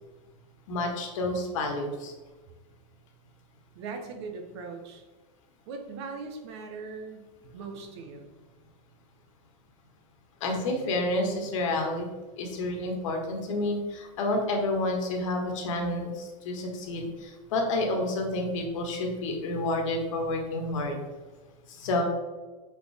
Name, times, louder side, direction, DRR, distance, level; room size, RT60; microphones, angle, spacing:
voice 1, 0.7-2.1 10.4-12.1 12.4-21.0 21.7-22.0, left 2 dB, 65° left, 2 dB, 1.6 m, -29 dB
voice 2, 3.7-5.0 5.7-7.3 7.5-8.3, right 4 dB, 50° right, 4 dB, 1.0 m, -40 dB
6.1 x 4.6 x 3.5 m, 1.2 s
supercardioid pair, 165°, 18 cm